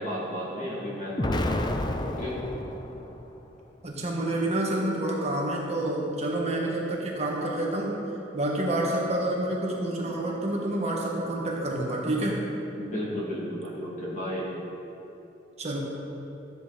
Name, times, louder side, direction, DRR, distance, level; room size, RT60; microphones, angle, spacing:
voice 1, 0.0-2.4 12.8-14.5, equal, 45° left, -6 dB, 2.6 m, -33 dB
Explosion, 1.2-3.3, left 1 dB, 25° left, 0.5 m, -30 dB
voice 2, 3.8-8.0 8.3-12.4 15.6-15.8, right 1 dB, 35° right, -2 dB, 1.5 m, -28 dB
13.5 x 8.0 x 4.2 m, 2.9 s
head